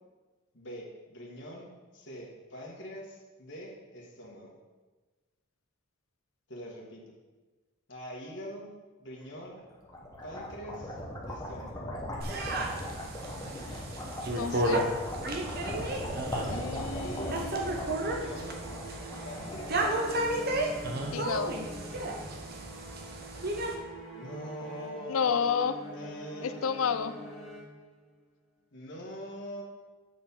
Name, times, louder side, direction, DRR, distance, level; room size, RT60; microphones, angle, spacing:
voice 1, 0.5-4.6 6.5-7.1 7.9-8.7 9.0-9.6 10.2-11.0 11.3-11.9 16.9-17.4 17.9-18.7 19.2-20.7 24.2-25.3 25.9-26.6 28.7-29.6, equal, 55° left, -3 dB, 1.6 m, -43 dB
sound 1, 9.6-20.7, left 1 dB, 15° left, 1.1 m, -39 dB
sound 2, 12.2-23.7, right 1 dB, 45° right, 0.9 m, -33 dB
voice 2, 13.7-14.0 14.3-14.9 16.5-17.8 21.1-21.6 25.1-25.7 26.4-27.2, left 6 dB, 80° left, 12 dB, 0.4 m, -31 dB
sound 3, 16.7-28.2, equal, ahead, 1.7 m, -45 dB
8.1 x 4.7 x 5.4 m, 1.3 s
head